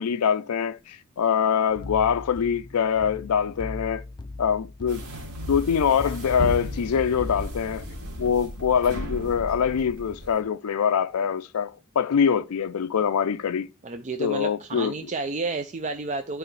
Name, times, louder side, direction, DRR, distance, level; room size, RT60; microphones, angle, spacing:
voice 1, 0.0-4.0 4.4-5.0 5.5-7.8 8.2-13.7 14.2-14.9, left 7 dB, 80° left, 0.4 m, -24 dB
sound 1, 1.7-7.8, left 2 dB, 20° left, 0.5 m, -38 dB
sound 2, 4.9-10.4, equal, 65° right, 2.6 m, -35 dB
voice 2, 13.8-16.4, right 3 dB, 35° right, 0.5 m, -31 dB
11.0 x 4.6 x 3.2 m
head